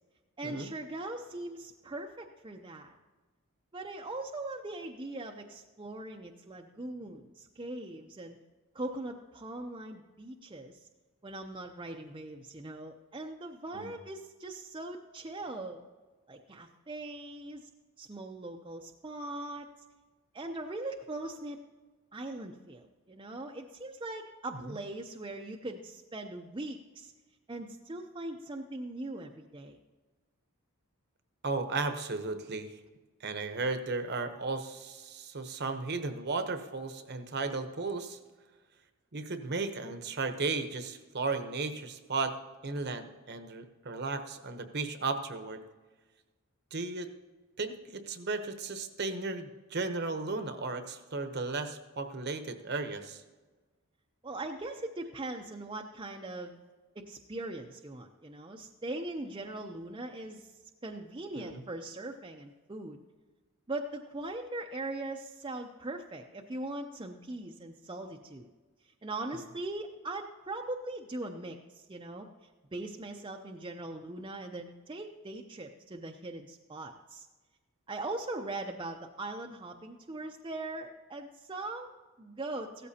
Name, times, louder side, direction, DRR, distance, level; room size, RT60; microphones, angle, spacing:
voice 1, 0.4-3.0 3.7-8.4 8.7-10.9 11.2-15.8 16.3-17.7 18.0-19.7 20.3-21.6 22.1-27.1 27.5-29.8 54.2-56.6 57.0-60.5 60.8-63.0 63.7-68.5 69.0-72.3 72.7-77.3 77.9-82.9, right 2 dB, 20° right, 2 dB, 0.6 m, -40 dB
voice 2, 31.4-32.7 33.2-38.2 39.1-42.3 42.6-45.6 46.7-47.1 47.6-53.2 61.4-61.6, right 3 dB, 50° right, 8 dB, 0.9 m, -35 dB
16.0 x 13.5 x 2.8 m, 1.3 s
head